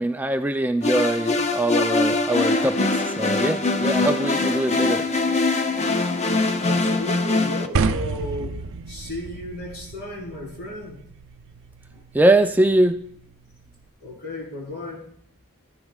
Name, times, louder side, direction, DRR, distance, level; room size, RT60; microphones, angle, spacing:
voice 1, 0.0-5.0 12.1-13.0, right 1 dB, 10° right, 7 dB, 0.3 m, -22 dB
sound 1, 0.8-7.7, left 3 dB, 30° left, 0.6 m, -22 dB
voice 2, 6.5-8.6 8.9-11.0 11.9-12.0 14.0-15.1, left 1 dB, 50° left, -3 dB, 4.0 m, -34 dB
sound 2, 7.7-13.9, right 4 dB, 60° right, 0.5 m, -31 dB
14.0 x 10.5 x 2.4 m, 0.64 s
head